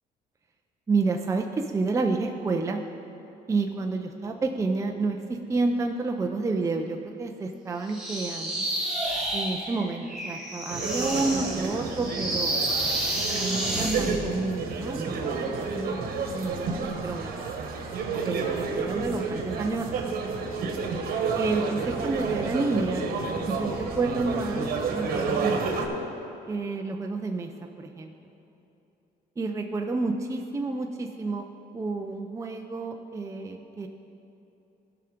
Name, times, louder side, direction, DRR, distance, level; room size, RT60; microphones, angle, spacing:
voice 1, 0.9-2.8 3.5-8.7 9.3-12.6 13.3-15.5 15.8-17.3 18.2-20.2 20.9-21.0 21.3-23.0 23.5-26.0 26.5-27.5 27.8-28.1 29.4-31.4 31.7-33.9, right 3 dB, 20° right, 3 dB, 0.5 m, -30 dB
sound 1, 7.9-14.2, right 1 dB, 5° right, 2.1 m, -30 dB
sound 2, 10.7-25.9, right 4 dB, 60° right, 1.3 m, -30 dB
15.5 x 5.8 x 5.1 m, 2.9 s
cardioid pair, 110°, 17 cm